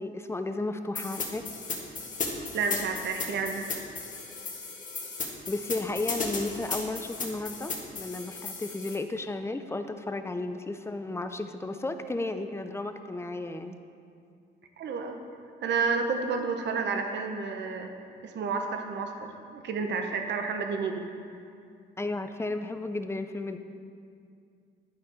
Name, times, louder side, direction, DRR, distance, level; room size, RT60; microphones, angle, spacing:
voice 1, 0.0-1.5 5.5-13.8 22.0-23.6, left 2 dB, 15° left, 8 dB, 0.4 m, -33 dB
sound 1, 0.9-8.9, left 4 dB, 40° left, 1.3 m, -35 dB
voice 2, 2.5-3.7 14.8-15.2 15.6-17.9 18.2-21.1, right 5 dB, 60° right, 5 dB, 0.9 m, -30 dB
10.5 x 4.3 x 4.8 m, 2.4 s
cardioid pair, 90°, 20 cm